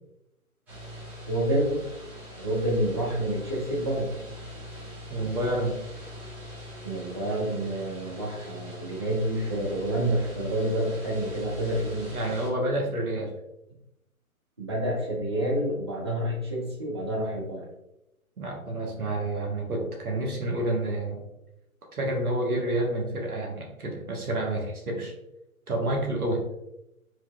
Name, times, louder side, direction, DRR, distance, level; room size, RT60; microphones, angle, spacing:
sound 1, 0.7-12.5, equal, 5° right, 0.9 m, -42 dB
voice 1, 1.3-1.8 2.4-4.1 6.8-12.1 14.6-17.7, right 1 dB, 20° right, -4 dB, 0.5 m, -28 dB
voice 2, 5.1-5.8 12.1-13.3 18.4-21.2 21.9-25.1 25.7-26.4, right 1 dB, 75° right, 0 dB, 1.3 m, -29 dB
4.6 x 2.8 x 2.3 m, 0.87 s
figure-of-eight pair, 135°, 44 cm